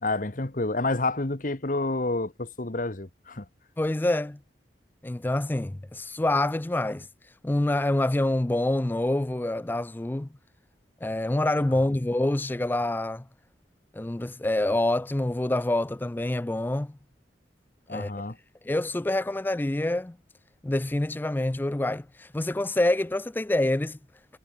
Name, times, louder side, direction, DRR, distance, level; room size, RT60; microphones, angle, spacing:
voice 1, 0.0-3.4 17.9-18.4, left 2 dB, 45° left, 1.4 m, -29 dB
voice 2, 3.8-4.4 5.0-7.1 7.4-10.3 11.0-13.2 13.9-17.0 17.9-18.1 18.7-20.2 20.6-24.0, left 1 dB, 10° left, 0.3 m, -26 dB
head